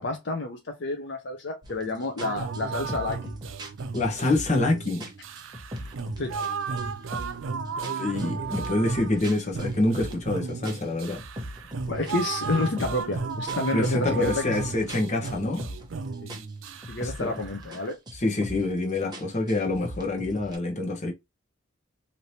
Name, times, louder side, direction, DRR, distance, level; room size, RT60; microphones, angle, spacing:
voice 1, 0.0-3.4 6.2-6.3 11.9-14.5 16.2-16.3 16.9-18.0, left 2 dB, 60° left, 0.7 m, -29 dB
sound 1, 1.6-1.8 2.2-4.7 5.0-6.5 6.8-7.5 7.8-10.3 10.6-13.1 13.5-16.0 16.3-17.8 18.1-18.8 19.1-20.6, equal, 20° right, 0.8 m, -39 dB
sound 2, 2.2-17.9, right 5 dB, 75° right, 0.5 m, -35 dB
voice 2, 3.9-5.1 8.0-11.2 13.7-15.7 17.0-17.3 18.1-21.1, left 2 dB, 35° left, 1.0 m, -26 dB
3.2 x 2.8 x 2.7 m
head